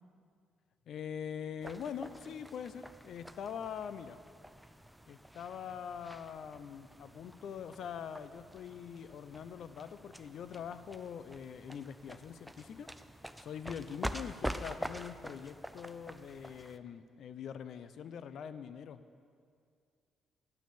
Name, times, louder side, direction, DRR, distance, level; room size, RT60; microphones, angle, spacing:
voice 1, 0.9-4.2 5.1-12.9 13.4-19.0, left 8 dB, 70° left, 13 dB, 0.5 m, -43 dB
sound 1, 1.6-16.8, equal, 5° right, 0.4 m, -46 dB
11.5 x 6.4 x 7.0 m, 2.2 s
cardioid pair, 90°, 0 cm